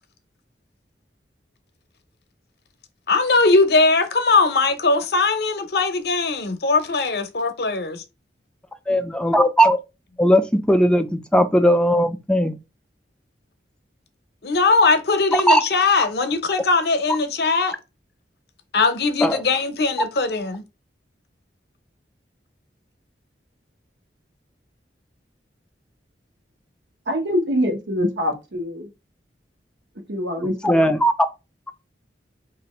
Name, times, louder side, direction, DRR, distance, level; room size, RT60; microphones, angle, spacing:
voice 1, 3.1-8.0 14.4-17.8 18.7-20.6, left 3 dB, 60° left, 0.6 m, -20 dB
voice 2, 8.9-9.8 10.2-12.6 15.3-15.6 19.2-19.4 30.4-31.1, equal, 5° left, 0.3 m, -18 dB
voice 3, 27.1-28.9 30.1-30.9, equal, 85° right, 1.0 m, -24 dB
2.8 x 2.5 x 4.2 m
head